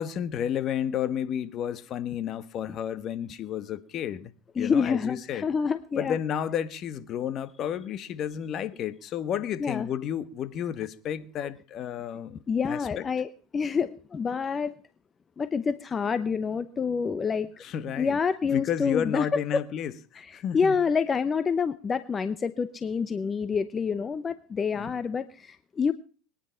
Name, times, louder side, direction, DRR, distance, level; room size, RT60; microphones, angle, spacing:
voice 1, 0.0-4.3 4.6-5.5 6.0-13.0 17.6-18.2 18.4-19.9 20.3-20.7 24.7-24.9, left 9 dB, 45° left, 1.3 m, -31 dB
voice 2, 4.6-6.2 9.6-9.9 12.5-14.8 15.4-17.6 18.0-19.6 20.2-25.9, left 5 dB, 25° left, 0.8 m, -27 dB
21.5 x 10.0 x 5.7 m
hypercardioid pair, 95°, 0 cm